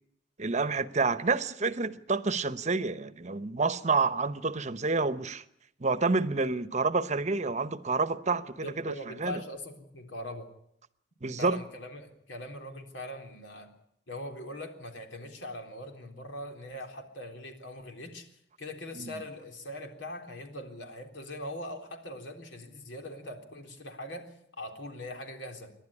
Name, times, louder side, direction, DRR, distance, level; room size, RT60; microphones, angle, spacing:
voice 1, 0.4-5.4 5.8-9.4 11.2-11.6 19.0-19.1, right 4 dB, 40° right, 1.0 m, -29 dB
voice 2, 8.6-10.5 11.4-13.7 14.1-25.7, left 1 dB, 80° left, 3.7 m, -41 dB
28.5 x 11.5 x 9.8 m
head